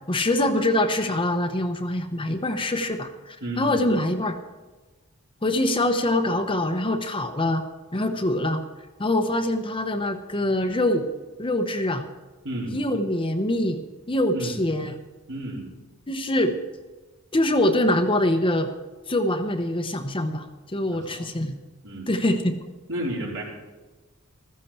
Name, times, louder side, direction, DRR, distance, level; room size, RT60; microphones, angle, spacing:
voice 1, 0.1-4.4 5.4-7.6 7.9-8.6 9.0-11.1 11.4-12.1 12.7-14.9 16.1-16.6 17.3-18.7 19.1-20.5 20.7-21.6 22.1-22.6, left 1 dB, 25° left, 6 dB, 0.9 m, -24 dB
voice 2, 3.4-3.8 12.4-12.8 14.3-14.6 15.3-15.7 20.9-21.3 21.8-22.1 22.9-23.4, right 1 dB, 60° right, -3 dB, 4.5 m, -32 dB
15.5 x 14.0 x 4.4 m, 1.2 s
head